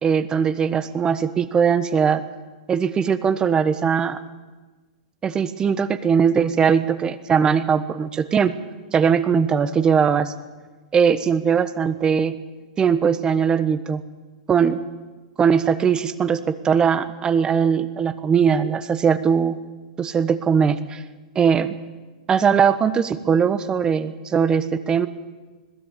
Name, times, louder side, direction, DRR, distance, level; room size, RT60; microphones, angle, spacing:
voice 1, 0.0-2.2 2.7-4.2 5.2-8.5 8.9-10.3 10.9-12.4 12.8-14.0 14.5-14.8 15.4-19.6 20.0-21.0 21.3-21.8 22.3-25.1, right 7 dB, 20° right, 13 dB, 1.2 m, -20 dB
21.0 x 16.0 x 8.4 m, 1.3 s
hypercardioid pair, 125°, 4 cm